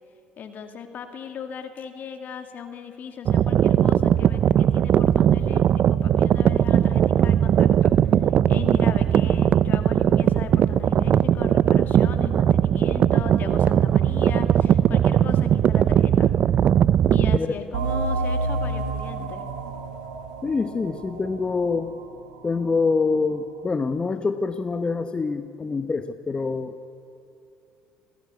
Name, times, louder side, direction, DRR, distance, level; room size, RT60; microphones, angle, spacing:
voice 1, 0.4-7.9 8.3-16.3 17.1-19.5, left 7 dB, 50° left, 7 dB, 2.2 m, -37 dB
sound 1, 3.3-17.4, right 9 dB, 50° right, 0.6 m, -19 dB
sound 2, 17.7-23.0, right 3 dB, 85° right, 2.8 m, -30 dB
voice 2, 20.4-22.0 22.4-26.8, left 4 dB, 25° left, 9 dB, 1.1 m, -25 dB
27.0 x 17.0 x 8.3 m, 2.8 s
hypercardioid pair, 65°, 4 cm